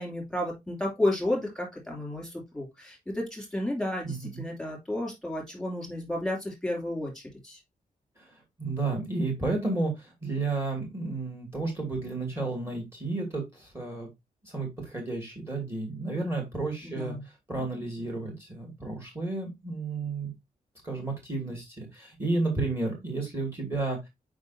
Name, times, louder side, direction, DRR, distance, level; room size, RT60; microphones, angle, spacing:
voice 1, 0.0-7.6 16.8-17.2, left 1 dB, 5° left, -1 dB, 2.7 m, -32 dB
voice 2, 4.0-4.4 8.2-14.1 14.4-17.1 17.5-20.3 20.8-24.1, right 3 dB, 15° right, 0 dB, 2.3 m, -32 dB
7.0 x 5.0 x 2.7 m, 0.19 s
wide cardioid pair, 150°, 15 cm